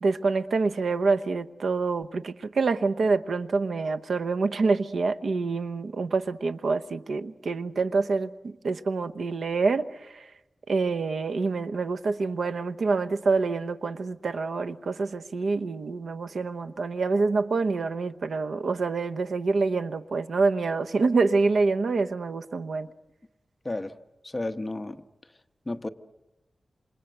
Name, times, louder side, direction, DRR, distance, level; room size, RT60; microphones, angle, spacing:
voice 1, 0.0-10.3 10.7-22.9, right 4 dB, 80° right, 0.9 m, -26 dB
voice 2, 24.2-25.0 25.6-25.9, left 2 dB, 25° left, 1.1 m, -32 dB
28.0 x 27.0 x 7.9 m
wide cardioid pair, 95°, 0 cm